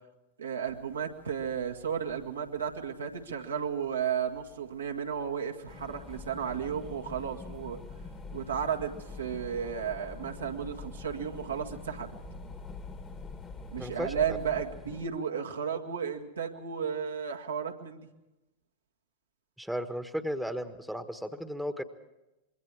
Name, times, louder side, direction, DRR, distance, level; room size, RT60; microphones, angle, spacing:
voice 1, 0.4-7.8 8.3-12.1 13.7-18.0, right 7 dB, 70° right, 2 dB, 1.9 m, -33 dB
sound 1, 0.6-14.4, equal, 85° left, 1.7 m, -53 dB
sound 2, 5.7-15.1, left 4 dB, 15° left, 1.5 m, -45 dB
voice 2, 13.8-14.4 19.6-21.8, equal, ahead, 10 dB, 1.4 m, -35 dB
25.5 x 23.0 x 4.8 m, 0.97 s
figure-of-eight pair, 90°, 0 cm